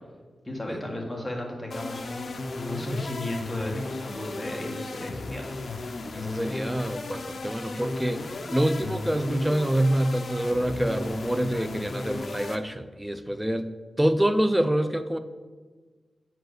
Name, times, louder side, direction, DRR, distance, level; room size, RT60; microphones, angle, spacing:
voice 1, 0.4-5.5, left 1 dB, 10° left, -1 dB, 1.5 m, -34 dB
sound 1, 1.7-12.6, left 3 dB, 55° left, 0.6 m, -36 dB
voice 2, 6.1-13.7 14.0-15.2, right 1 dB, 10° right, 10 dB, 0.4 m, -26 dB
7.7 x 4.5 x 6.4 m, 1.4 s
wide cardioid pair, 125°, 0 cm